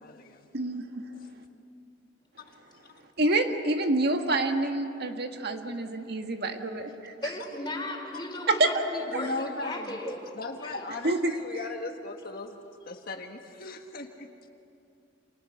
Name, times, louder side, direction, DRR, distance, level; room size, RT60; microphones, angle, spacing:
voice 1, 0.0-0.5 2.5-2.6 2.9-3.0 9.1-10.0 10.3-12.6 12.8-14.3, left 2 dB, 55° left, 3 dB, 1.5 m, -38 dB
voice 2, 3.2-7.1 8.5-8.7 9.1-9.3 11.0-11.4, right 2 dB, 60° right, 5 dB, 1.7 m, -27 dB
voice 3, 7.2-10.3 10.6-10.8, left 1 dB, 25° left, 1 dB, 4.6 m, -36 dB
29.5 x 27.5 x 6.6 m, 2.6 s
head